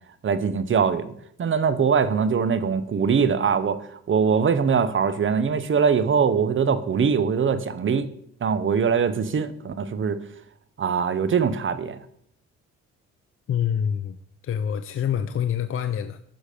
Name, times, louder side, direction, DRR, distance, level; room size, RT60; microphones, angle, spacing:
voice 1, 0.2-1.1 1.4-8.1 8.4-10.2 10.8-12.0, right 6 dB, 40° right, 0.9 m, -22 dB
voice 2, 13.5-14.2 14.4-16.2, left 9 dB, 45° left, 0.6 m, -26 dB
10.0 x 6.2 x 5.1 m
cardioid pair, 90°, 30 cm